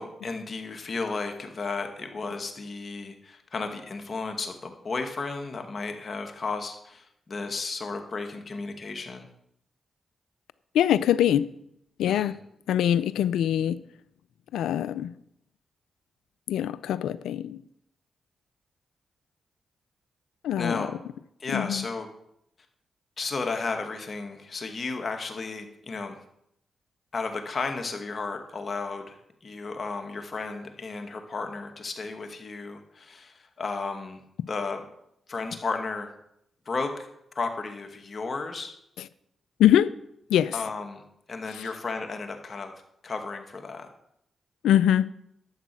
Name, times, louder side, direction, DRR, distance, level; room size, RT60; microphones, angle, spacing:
voice 1, 0.0-9.3 12.1-12.4 20.6-20.9 21.4-22.1 23.2-26.2 27.1-34.2 34.5-34.8 35.3-36.1 36.7-37.1 37.4-38.7 40.5-42.7 43.0-43.9, left 4 dB, 50° left, 5 dB, 2.1 m, -33 dB
voice 2, 10.7-11.5 12.0-12.3 12.7-13.8 14.5-15.1 16.5-17.6 20.4-20.9 21.5-21.8 39.0-39.1 39.6-39.9 40.3-40.6 41.6-41.7 44.6-45.1, left 11 dB, 85° left, 17 dB, 0.4 m, -23 dB
12.0 x 8.2 x 6.1 m, 0.76 s
supercardioid pair, 50°, 0 cm